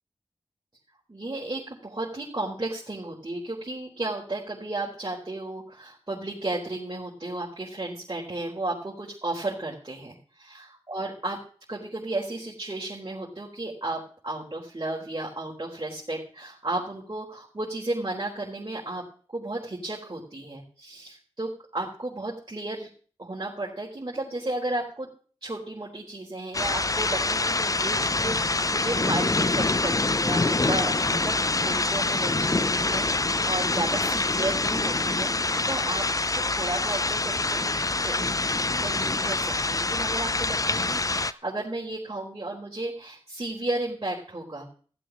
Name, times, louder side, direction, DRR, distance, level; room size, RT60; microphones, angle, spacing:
voice 1, 1.1-11.4 11.7-19.0 19.3-22.9 23.2-25.1 25.4-36.0 36.5-38.3 38.8-44.7, right 2 dB, 40° right, -5 dB, 4.3 m, -33 dB
sound 1, 26.5-41.3, left 3 dB, 35° left, 0.6 m, -25 dB
15.5 x 7.7 x 6.2 m, 0.42 s
wide cardioid pair, 50°, 11 cm